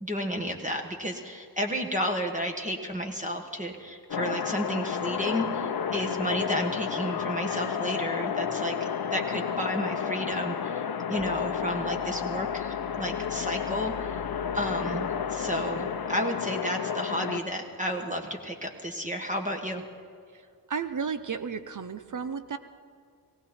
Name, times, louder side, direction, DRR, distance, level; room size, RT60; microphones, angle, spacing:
voice 1, 0.0-8.8 9.1-14.2 14.5-19.8, equal, 20° right, 3 dB, 1.6 m, -32 dB
sound 1, 4.1-17.4, left 7 dB, 65° left, 0.9 m, -31 dB
sound 2, 11.2-16.2, left 9 dB, 15° left, 1.7 m, -47 dB
voice 2, 20.7-22.6, right 6 dB, 50° right, 11 dB, 0.8 m, -33 dB
18.5 x 17.0 x 4.4 m, 2.3 s
cardioid pair, 55°, 40 cm